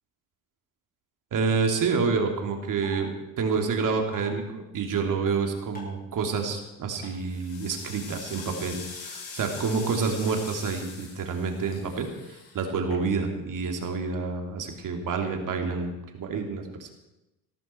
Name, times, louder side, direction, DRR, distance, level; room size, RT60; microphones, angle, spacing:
voice 1, 1.3-16.9, right 5 dB, 55° right, 4 dB, 3.0 m, -28 dB
sound 1, 1.9-2.0 2.8-3.0 4.1-4.3 5.7-6.0 7.0-7.1 8.4-8.5, equal, 25° left, 7.9 m, -43 dB
sound 2, 6.2-6.6 7.1-13.4, left 4 dB, 75° left, 6.1 m, -43 dB
19.0 x 13.5 x 4.6 m, 0.97 s
cardioid pair, 90°, 38 cm